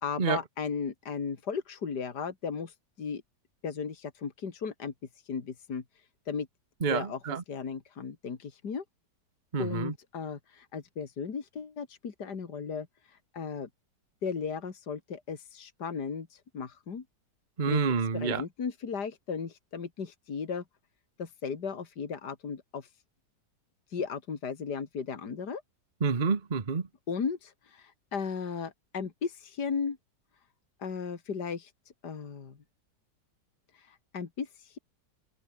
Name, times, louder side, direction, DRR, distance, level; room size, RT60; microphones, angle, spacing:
voice 1, 0.0-3.2 3.6-4.9 5.3-5.8 6.3-6.5 6.9-7.2 7.5-8.8 9.6-12.9 13.3-13.7 14.2-17.0 17.7-17.8 18.1-20.6 21.2-22.9 23.9-25.6 27.1-30.0 30.8-31.7 32.0-32.6 33.8-34.8, left 6 dB, 65° left, 2.8 m, -36 dB
voice 2, 6.8-7.4 9.5-9.9 17.6-18.4 26.0-26.9, right 5 dB, 30° right, 1.3 m, -28 dB
open air
omnidirectional pair, 1.9 m